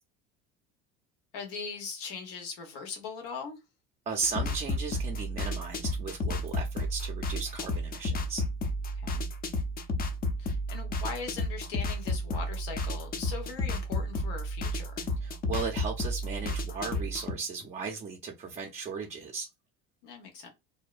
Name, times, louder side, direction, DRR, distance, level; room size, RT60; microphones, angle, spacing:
voice 1, 1.3-3.6 8.9-9.2 10.4-15.1 20.0-20.5, left 5 dB, 80° left, 1.1 m, -40 dB
voice 2, 4.1-8.4 15.2-19.5, right 5 dB, 25° right, 0.5 m, -36 dB
sound 1, 4.2-17.3, left 1 dB, 30° left, 0.5 m, -32 dB
2.7 x 2.1 x 2.3 m
supercardioid pair, 120°, 29 cm